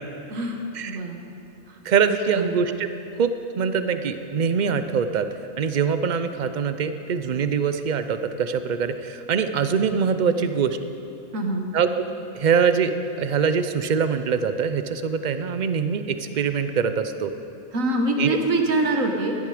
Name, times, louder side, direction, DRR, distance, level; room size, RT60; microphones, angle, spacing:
voice 1, 0.3-1.2 1.7-1.8 2.3-2.6 11.3-11.7 17.7-19.4, right 1 dB, 85° right, 3 dB, 1.8 m, -24 dB
voice 2, 1.8-2.9 3.2-5.3 5.6-10.8 11.7-12.0 12.3-17.3 18.2-18.4, right 6 dB, 45° right, 10 dB, 0.6 m, -23 dB
16.5 x 12.0 x 5.0 m, 2.7 s
omnidirectional pair, 1.3 m